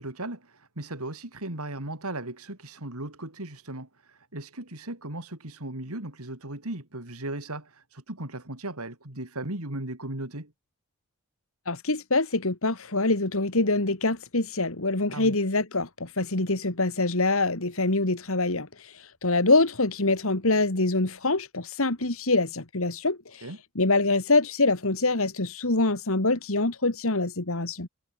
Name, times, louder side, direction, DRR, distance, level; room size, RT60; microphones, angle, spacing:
voice 1, 0.0-10.5 15.1-15.4 23.4-23.6, right 1 dB, 80° right, 4.3 m, -37 dB
voice 2, 11.7-23.5 23.8-27.9, left 2 dB, 65° left, 2.4 m, -25 dB
head